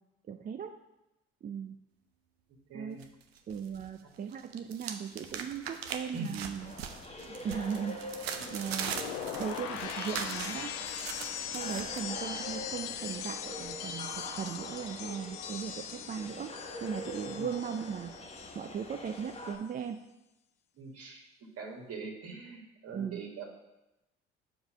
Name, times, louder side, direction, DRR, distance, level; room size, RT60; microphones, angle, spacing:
voice 1, 0.3-0.8 1.4-1.8 2.7-3.0 3.5-6.7 7.2-8.0 8.5-9.1 9.4-10.8 11.5-16.5 16.8-18.1 18.5-20.0 22.9-23.2, right 7 dB, 30° right, 6 dB, 0.4 m, -38 dB
voice 2, 2.7-3.0 6.1-6.3 8.3-8.5 11.6-11.8 17.3-17.6 20.8-21.2 21.6-23.4, right 4 dB, 55° right, 1 dB, 1.8 m, -43 dB
sound 1, 3.0-3.9 4.2-12.0, right 7 dB, 85° right, 0.6 m, -41 dB
sound 2, 6.6-19.6, left 1 dB, 20° left, 1.3 m, -44 dB
sound 3, 8.7-18.8 19.1-19.5, left 9 dB, 70° left, 0.6 m, -41 dB
5.2 x 4.9 x 6.2 m, 0.94 s
hypercardioid pair, 55°, 30 cm